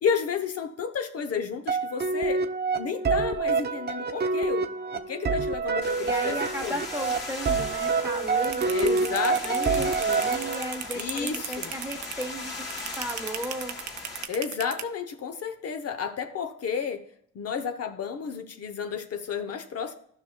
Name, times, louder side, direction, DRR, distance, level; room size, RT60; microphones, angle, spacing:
voice 1, 0.0-2.4 2.7-6.8 8.7-9.9 10.9-11.7 14.3-17.1 17.3-19.9, left 6 dB, 55° left, 7 dB, 0.7 m, -32 dB
sound 1, 1.7-11.0, right 4 dB, 35° right, 0.6 m, -27 dB
sound 2, 5.8-14.3, left 3 dB, 35° left, 2.4 m, -38 dB
voice 2, 6.0-9.1 9.4-13.8, right 1 dB, 10° right, 5 dB, 0.9 m, -36 dB
sound 3, 8.4-14.8, right 10 dB, 70° right, 0.7 m, -35 dB
13.0 x 5.6 x 2.2 m, 0.70 s
cardioid pair, 90°, 30 cm